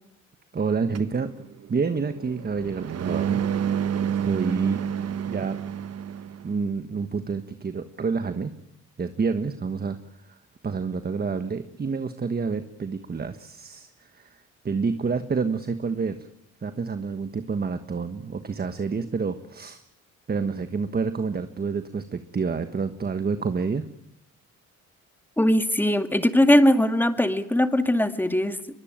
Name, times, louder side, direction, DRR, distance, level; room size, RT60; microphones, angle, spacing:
voice 1, 0.5-1.3 1.7-3.4 4.2-4.8 5.3-5.6 6.4-8.5 9.0-10.0 10.6-13.9 14.6-16.2 16.6-19.8 20.3-23.8, right 5 dB, 30° right, 10 dB, 1.4 m, -28 dB
sound 1, 1.0-6.5, right 8 dB, 55° right, 1.4 m, -29 dB
voice 2, 25.4-28.6, left 1 dB, 5° left, 8 dB, 2.1 m, -20 dB
23.5 x 22.5 x 9.0 m, 0.79 s
cardioid pair, 90°, 30 cm